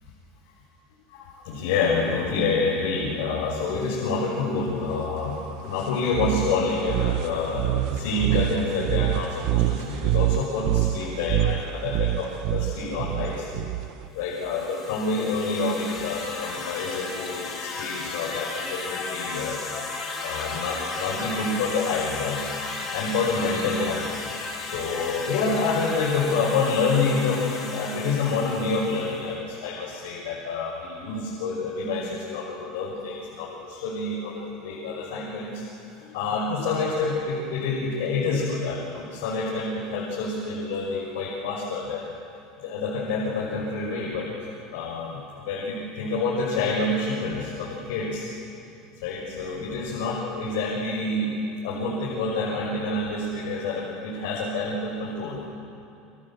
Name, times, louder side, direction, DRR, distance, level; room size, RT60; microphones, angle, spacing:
voice 1, 1.1-13.7 14.1-19.6 19.9-22.5 22.9-24.3 24.6-42.1 42.6-48.2 49.0-51.3 51.6-55.4, left 3 dB, 80° left, -4 dB, 6.6 m, -28 dB
sound 1, 6.1-14.1, right 14 dB, 50° right, 0.8 m, -26 dB
sound 2, 14.2-29.3, left 3 dB, 30° left, 4.9 m, -35 dB
29.0 x 25.0 x 7.8 m, 2.6 s
cardioid pair, 170°, 0 cm